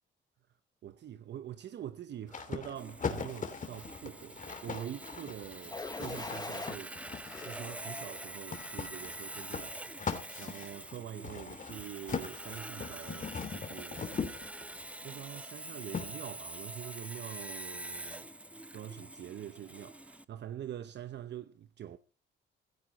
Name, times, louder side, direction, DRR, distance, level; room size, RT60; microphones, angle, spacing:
voice 1, 0.8-7.0 7.2-14.1 15.0-18.3 18.7-22.0, right 10 dB, 60° right, 0.9 m, -45 dB
sound 1, 2.3-7.7 8.5-14.9 15.9-16.1, left 5 dB, 40° left, 3.0 m, -40 dB
Sawing, 2.7-20.2, right 1 dB, 5° right, 0.8 m, -45 dB
sound 2, 5.7-6.8 7.3-8.3 8.9-9.3, left 3 dB, 20° left, 1.2 m, -43 dB
15.5 x 14.5 x 4.2 m
cardioid pair, 90°, 20 cm